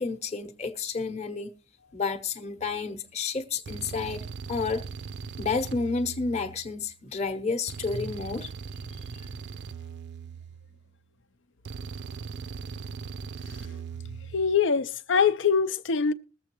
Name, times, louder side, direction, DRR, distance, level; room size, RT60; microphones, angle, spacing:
voice 1, 0.0-1.5 1.9-4.2 4.5-4.8 5.4-8.5, left 4 dB, 35° left, 0.8 m, -30 dB
sound 1, 2.6-2.9 3.7-6.9 7.7-10.9 11.7-14.6, right 5 dB, 65° right, 0.5 m, -40 dB
voice 2, 13.4-13.8 14.3-16.1, left 6 dB, 80° left, 0.6 m, -24 dB
20.5 x 7.4 x 3.0 m
head